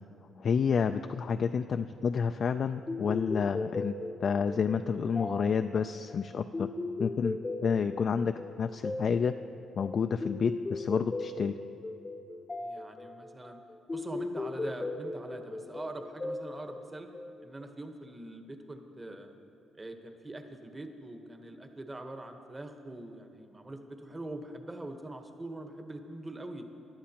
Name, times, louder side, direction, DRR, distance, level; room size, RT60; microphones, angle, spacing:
voice 1, 0.4-3.9 4.2-6.7 7.0-9.4 9.8-11.6, left 6 dB, 50° left, 8 dB, 0.3 m, -29 dB
sound 1, 2.9-17.6, left 2 dB, 25° left, 0.7 m, -38 dB
voice 2, 12.6-13.6 13.9-17.1 17.4-19.3 19.7-26.7, right 1 dB, 20° right, 5 dB, 1.1 m, -43 dB
19.0 x 11.5 x 2.9 m, 2.6 s
cardioid pair, 90°, 0 cm